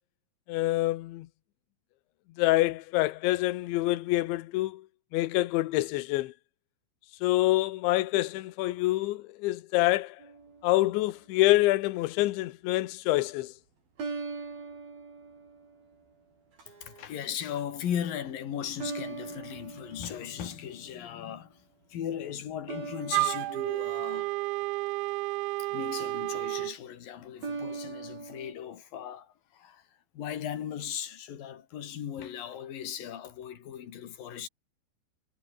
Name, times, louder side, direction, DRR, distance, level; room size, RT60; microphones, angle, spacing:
voice 1, 0.5-1.3 2.4-4.9 5.1-6.3 7.2-10.2 10.6-13.5, left 18 dB, 75° left, 3.2 m, -26 dB
sound 1, 10.2-11.0 14.0-16.0 16.6-17.1 18.8-20.8 22.7-25.1 27.4-28.5, right 4 dB, 45° right, 8.7 m, -41 dB
voice 2, 16.8-21.6 21.9-24.3 25.7-29.8 30.1-34.5, left 9 dB, 50° left, 3.7 m, -37 dB
Wind instrument woodwind instrument, 23.1-26.8, right 23 dB, 85° right, 2.6 m, -31 dB
omnidirectional pair, 5.8 m